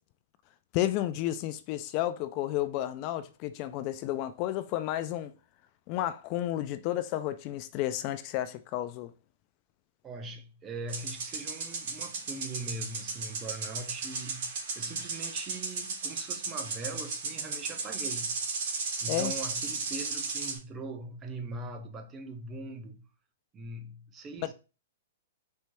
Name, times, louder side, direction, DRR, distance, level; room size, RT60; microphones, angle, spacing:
voice 1, 0.7-5.3 5.9-9.1 19.1-19.3, left 13 dB, 40° left, 0.3 m, -32 dB
voice 2, 10.0-18.3 18.6-23.0 23.5-24.5, right 3 dB, 20° right, 0.6 m, -41 dB
sound 1, 10.9-20.6, right 4 dB, 55° right, 1.5 m, -35 dB
4.3 x 2.9 x 2.2 m
hypercardioid pair, 125°, 0 cm